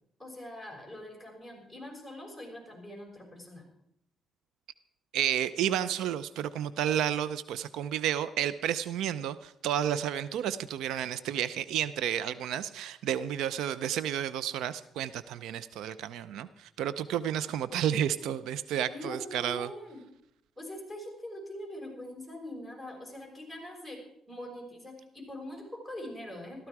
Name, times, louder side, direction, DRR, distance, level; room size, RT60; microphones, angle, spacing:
voice 1, 0.2-3.6 18.2-18.3 18.9-20.0 20.6-24.0 24.3-26.7, left 1 dB, 5° right, -1 dB, 6.2 m, -43 dB
voice 2, 5.1-19.7, right 10 dB, 85° right, 16 dB, 0.5 m, -31 dB
16.0 x 13.5 x 4.7 m, 0.75 s
cardioid pair, 90°, 0 cm